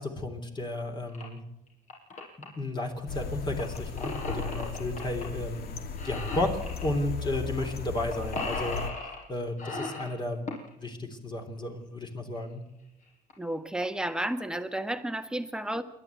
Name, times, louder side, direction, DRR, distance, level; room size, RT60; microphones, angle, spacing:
voice 1, 0.0-1.4 2.6-5.7 6.0-6.5 6.8-8.8 9.3-10.4 10.8-12.6, left 1 dB, 25° left, 4 dB, 3.4 m, -33 dB
sound 1, 1.1-1.2 1.7-2.4 3.6-5.2 5.6-5.7 6.0-6.9 7.6-7.7 8.0-9.2 9.6-10.7 12.4-12.5 13.0-13.1 13.3-13.4 13.8-14.1 14.5-14.9, left 3 dB, 50° left, 5.8 m, -37 dB
sound 2, 3.1-8.9, left 5 dB, 70° left, 2.4 m, -36 dB
voice 2, 13.4-15.8, right 1 dB, 5° right, 8 dB, 1.5 m, -32 dB
28.0 x 11.5 x 8.4 m, 0.89 s
cardioid pair, 110°, 17 cm